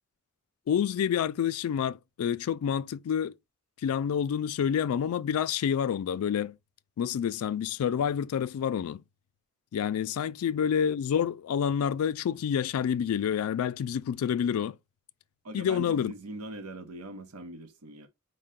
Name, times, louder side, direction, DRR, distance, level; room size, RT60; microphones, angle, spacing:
voice 1, 0.7-3.3 3.8-6.6 7.0-9.0 9.7-14.8 15.5-16.1, left 8 dB, 70° left, 0.3 m, -28 dB
voice 2, 15.4-18.1, right 2 dB, 90° right, 0.8 m, -41 dB
5.4 x 2.2 x 3.6 m
head